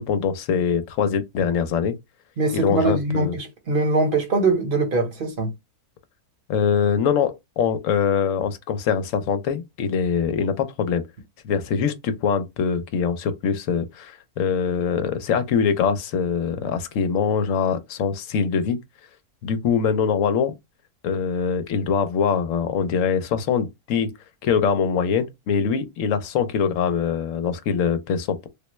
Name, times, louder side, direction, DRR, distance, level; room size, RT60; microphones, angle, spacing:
voice 1, 0.0-2.0 2.5-3.3 6.5-11.0 11.4-18.8 19.4-20.5 21.0-24.1 24.4-28.5, left 6 dB, 70° left, 0.9 m, -23 dB
voice 2, 2.4-5.5, right 3 dB, 45° right, 0.9 m, -22 dB
3.4 x 2.2 x 3.0 m
omnidirectional pair, 1.6 m